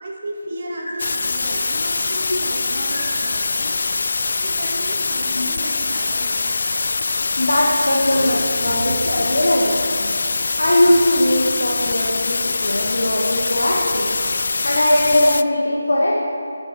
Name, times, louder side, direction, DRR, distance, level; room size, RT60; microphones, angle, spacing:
voice 1, 0.0-3.8 4.4-6.5 8.1-9.0, right 1 dB, 45° right, -1 dB, 2.2 m, -33 dB
sound 1, 1.0-15.4, left 4 dB, 55° left, 0.3 m, -23 dB
voice 2, 7.4-10.1 10.6-14.2 14.6-16.2, left 1 dB, 80° left, -4 dB, 1.9 m, -19 dB
14.5 x 7.4 x 4.7 m, 2.3 s
figure-of-eight pair, 160°, 0 cm